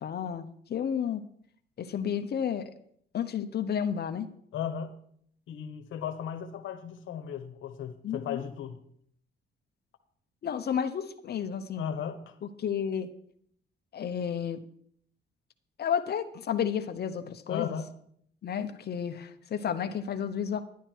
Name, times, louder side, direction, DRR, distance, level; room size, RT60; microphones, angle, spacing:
voice 1, 0.0-1.2 1.8-2.7 3.1-4.3 8.0-8.4 10.4-11.9 12.4-13.1 13.9-14.6 15.8-17.7 18.4-20.6, left 8 dB, 55° left, 0.9 m, -31 dB
voice 2, 4.5-5.0 5.5-8.8 11.8-12.3 17.5-17.9, left 8 dB, 80° left, 1.2 m, -36 dB
11.0 x 10.0 x 4.6 m
cardioid pair, 90°, 20 cm